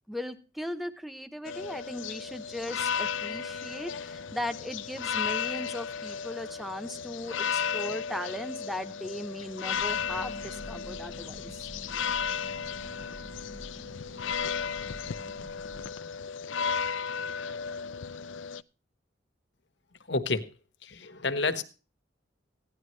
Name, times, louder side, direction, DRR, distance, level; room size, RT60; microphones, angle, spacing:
voice 1, 0.1-11.7, left 1 dB, ahead, 0.9 m, -38 dB
sound 1, 1.4-18.6, left 6 dB, 85° left, 0.5 m, -34 dB
sound 2, 9.7-15.9, equal, 65° right, 4.8 m, -47 dB
voice 2, 20.1-20.5 20.8-21.6, left 3 dB, 70° left, 1.3 m, -29 dB
16.5 x 11.0 x 3.2 m
head